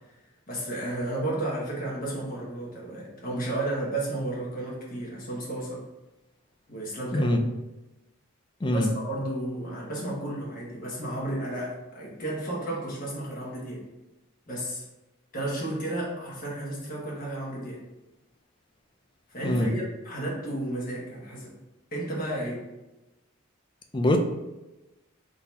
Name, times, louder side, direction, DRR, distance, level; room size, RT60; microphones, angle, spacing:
voice 1, 0.5-5.8 6.7-7.5 8.6-13.8 14.5-14.9 15.3-17.8 19.3-21.5 21.9-22.6, right 1 dB, 40° left, -4 dB, 1.3 m, -32 dB
voice 2, 7.1-7.4 8.6-8.9 19.4-19.7 23.9-24.2, left 1 dB, 20° left, 4 dB, 0.4 m, -23 dB
3.9 x 2.8 x 4.6 m, 1.0 s
head